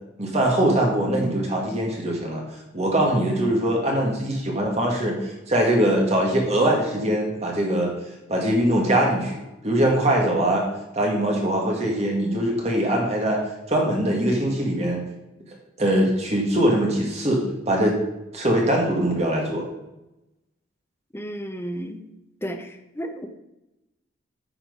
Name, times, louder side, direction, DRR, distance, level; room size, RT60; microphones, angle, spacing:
voice 1, 0.2-2.4 2.7-7.9 8.3-10.7 10.9-13.4 13.7-15.0 15.8-18.0 18.3-19.7, right 1 dB, 35° right, 0 dB, 1.8 m, -22 dB
voice 2, 21.1-22.0 22.4-23.3, equal, 10° left, 5 dB, 0.8 m, -33 dB
9.2 x 5.9 x 5.4 m, 0.95 s
head